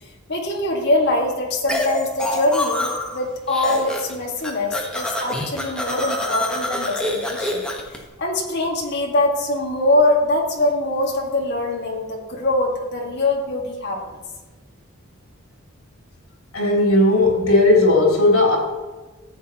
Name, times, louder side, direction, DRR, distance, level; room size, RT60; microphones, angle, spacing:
voice 1, 0.3-7.6 8.2-14.2, left 2 dB, 55° left, 0 dB, 2.0 m, -23 dB
sound 1, 1.7-3.2 3.5-4.1 4.4-8.0, left 1 dB, 5° left, 1.3 m, -26 dB
voice 2, 16.5-18.6, left 2 dB, 85° left, -2 dB, 3.5 m, -16 dB
14.0 x 8.3 x 3.0 m, 1.2 s
head